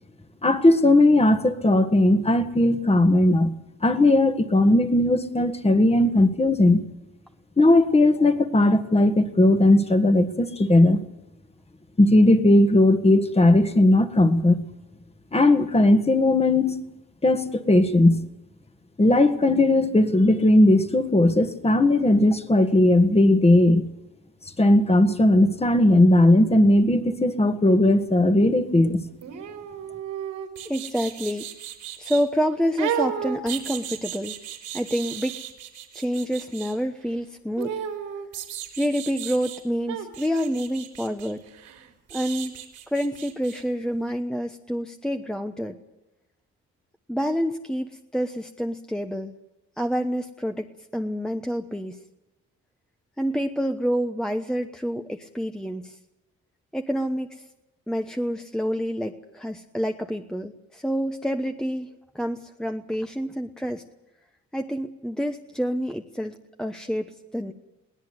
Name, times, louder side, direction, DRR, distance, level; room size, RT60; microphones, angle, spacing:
voice 1, 0.4-3.6 3.8-6.8 7.6-11.0 12.0-14.6 15.3-16.8 17.2-18.2 19.0-23.9 24.6-29.0, left 1 dB, 20° left, 8 dB, 1.8 m, -18 dB
sound 1, 29.2-32.2 32.8-36.7 37.6-39.6 39.9-43.6 43.9-44.0, right 9 dB, 85° right, 4.0 m, -34 dB
voice 2, 30.6-31.5 32.0-34.4 34.7-35.4 35.9-37.8 38.8-41.4 42.1-42.5 42.9-45.8 47.1-49.3 49.8-52.0 53.2-56.0 56.7-57.4 57.9-61.9 62.1-63.8 64.5-67.5, equal, ahead, 5 dB, 1.1 m, -28 dB
22.0 x 18.0 x 8.2 m, 0.97 s
cardioid pair, 90°, 30 cm